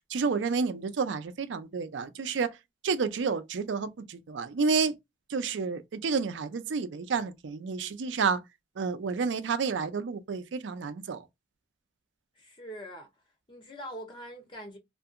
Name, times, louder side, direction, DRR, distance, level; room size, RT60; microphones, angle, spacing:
voice 1, 0.1-2.5 2.8-5.0 5.3-8.4 8.8-11.2, right 5 dB, 85° right, 0.4 m, -30 dB
voice 2, 12.4-13.1 13.5-14.8, equal, 25° left, 0.5 m, -43 dB
2.7 x 2.5 x 2.4 m
head